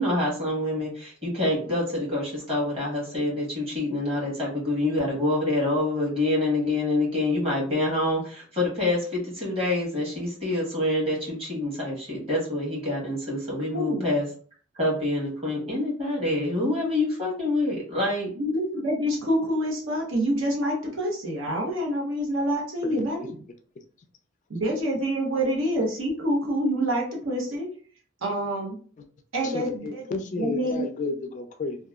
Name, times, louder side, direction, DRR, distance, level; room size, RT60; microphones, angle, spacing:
voice 1, 0.0-14.3 14.7-18.3, left 2 dB, 30° right, -4 dB, 1.3 m, -26 dB
voice 2, 13.7-14.1 18.4-23.4 24.5-27.7 28.2-28.8 29.3-30.0 30.4-30.9, equal, 80° right, -1 dB, 0.9 m, -27 dB
voice 3, 22.8-23.3 29.0-29.1 29.4-31.8, left 3 dB, 40° left, 6 dB, 0.3 m, -32 dB
2.8 x 2.2 x 2.3 m, 0.43 s
head